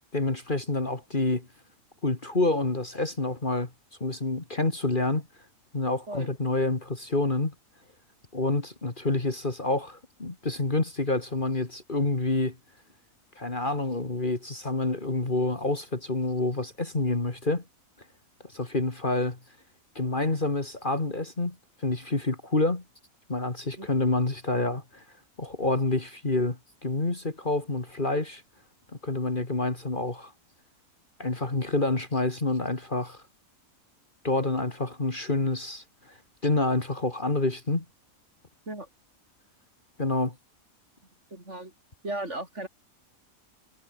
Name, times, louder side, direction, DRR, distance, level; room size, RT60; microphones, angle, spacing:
voice 1, 0.1-1.5 2.0-3.7 4.0-5.3 5.7-7.5 8.3-12.6 13.4-17.6 18.5-19.4 20.0-21.6 21.8-22.8 23.3-25.0 25.4-28.4 29.0-30.3 31.2-33.2 34.2-35.8 36.4-37.8 40.0-40.3, left 2 dB, 35° left, 2.6 m, -28 dB
voice 2, 41.3-41.7 42.0-42.7, right 2 dB, 50° right, 6.3 m, -35 dB
omnidirectional pair, 1.5 m